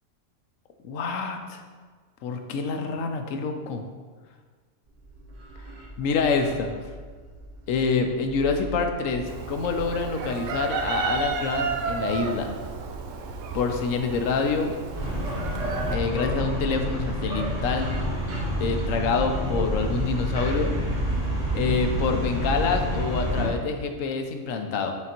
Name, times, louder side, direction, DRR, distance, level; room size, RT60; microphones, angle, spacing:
voice 1, 0.8-1.6 2.2-3.8 6.0-6.7 7.7-12.5 13.5-14.7 15.9-17.9 18.6-20.7 21.5-24.9, left 4 dB, 75° left, 5 dB, 1.0 m, -26 dB
sound 1, 4.9-23.2, right 1 dB, 45° right, 0.6 m, -43 dB
Chicken rooster, 9.3-16.0, right 5 dB, 75° right, 0.9 m, -32 dB
sound 2, 14.9-23.5, equal, 30° right, 1.5 m, -28 dB
8.3 x 3.9 x 2.9 m, 1.5 s
omnidirectional pair, 1.4 m